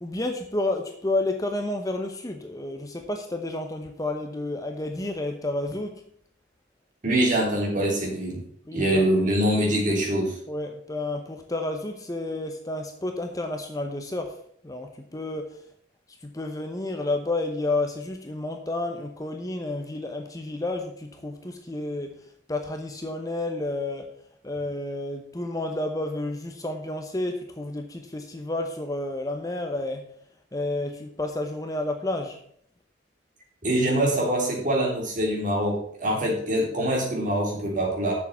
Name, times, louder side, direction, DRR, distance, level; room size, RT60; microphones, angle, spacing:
voice 1, 0.0-6.0 8.7-9.2 10.5-14.3 14.6-15.6 16.2-22.1 22.5-24.1 24.4-30.0 30.5-32.4, left 2 dB, 20° left, 4 dB, 0.8 m, -30 dB
voice 2, 7.0-8.4 8.7-10.4 33.6-38.1, right 1 dB, 40° right, -1 dB, 3.4 m, -24 dB
7.1 x 6.8 x 7.4 m, 0.64 s
head